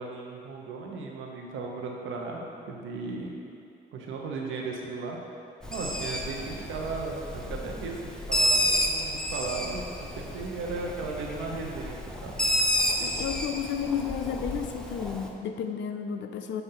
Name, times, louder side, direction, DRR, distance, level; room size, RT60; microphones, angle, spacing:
voice 1, 0.0-3.3 3.9-5.4 5.7-12.0 12.2-12.4, right 3 dB, 80° right, 0 dB, 1.0 m, -36 dB
Bird, 5.6-15.3, equal, 5° left, 0.6 m, -30 dB
voice 2, 13.0-16.6, left 7 dB, 65° left, 6 dB, 0.5 m, -32 dB
7.9 x 2.7 x 5.8 m, 2.5 s
cardioid pair, 90°, 20 cm